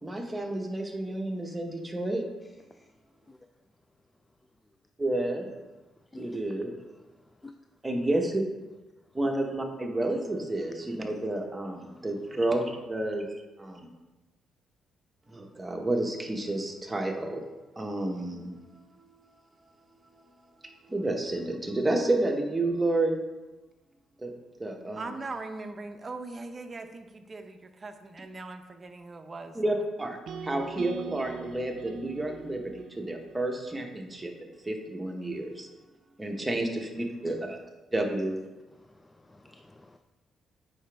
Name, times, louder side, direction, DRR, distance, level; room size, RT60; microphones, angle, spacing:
voice 1, 0.0-2.2 5.0-5.5 6.1-6.7 7.8-8.4 9.1-13.9 15.3-17.4 17.8-18.6 19.0-19.1 20.6-23.2 24.2-24.3 24.6-25.1 29.5-34.3 34.6-35.7 36.2-37.6 37.9-38.4, right 2 dB, 15° right, 2 dB, 1.2 m, -30 dB
voice 2, 5.9-6.7 7.1-7.5 11.8-12.0 37.2-37.6 38.7-40.0, left 2 dB, 15° left, 6 dB, 0.4 m, -49 dB
voice 3, 25.0-29.8, right 3 dB, 30° right, 7 dB, 0.7 m, -40 dB
sound 1, 30.3-34.4, right 7 dB, 70° right, 0.4 m, -42 dB
8.5 x 5.0 x 3.5 m, 1.1 s
cardioid pair, 90°, 0 cm